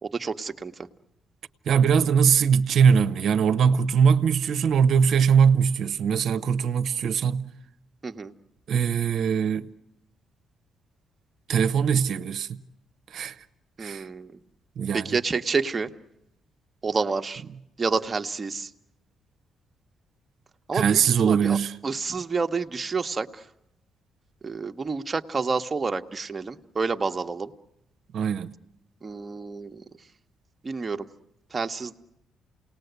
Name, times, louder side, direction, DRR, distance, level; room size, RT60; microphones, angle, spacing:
voice 1, 0.0-0.9 8.0-8.3 13.8-14.3 14.9-15.9 16.8-17.4 17.8-18.7 20.7-21.6 21.8-23.5 24.4-27.5 29.0-29.8 30.6-31.1 31.5-31.9, right 4 dB, 30° right, 1.1 m, -29 dB
voice 2, 1.7-7.5 8.7-9.7 11.5-12.6 13.1-13.4 13.8-14.1 14.8-15.2 20.7-21.7 28.1-28.5, right 7 dB, 65° right, 0.9 m, -21 dB
28.5 x 19.0 x 8.1 m
cardioid pair, 90°, 0 cm